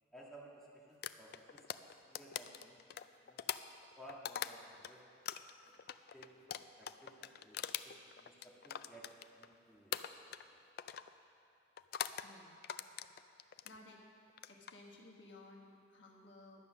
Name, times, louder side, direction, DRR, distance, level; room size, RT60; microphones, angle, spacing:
voice 1, 0.1-1.7 2.0-2.8 3.2-3.4 4.0-5.0 5.6-5.7 6.1-9.1 9.4-10.0, right 1 dB, ahead, -6 dB, 1.5 m, -57 dB
sound 1, 1.0-4.9 5.3-9.5 9.9-10.5 10.8-11.1 11.8-12.3 12.6-13.8 14.3-14.7, left 10 dB, 55° left, 0.3 m, -43 dB
voice 2, 12.2-12.6 13.6-14.0 14.5-16.6, left 2 dB, 75° left, -1 dB, 1.4 m, -57 dB
11.5 x 8.4 x 6.3 m, 2.6 s
head